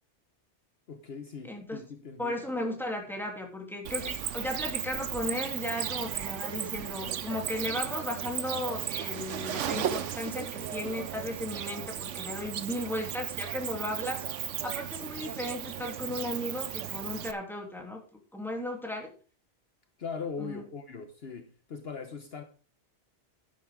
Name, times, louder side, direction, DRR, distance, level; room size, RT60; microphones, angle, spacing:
voice 1, 0.9-2.4 20.0-22.4, left 5 dB, 60° left, 1.2 m, -40 dB
voice 2, 1.4-1.8 2.2-19.1 20.4-20.6, left 1 dB, ahead, 3.0 m, -35 dB
Cricket, 3.9-17.3, right 9 dB, 80° right, 1.1 m, -35 dB
11.0 x 10.5 x 3.7 m
omnidirectional pair, 1.2 m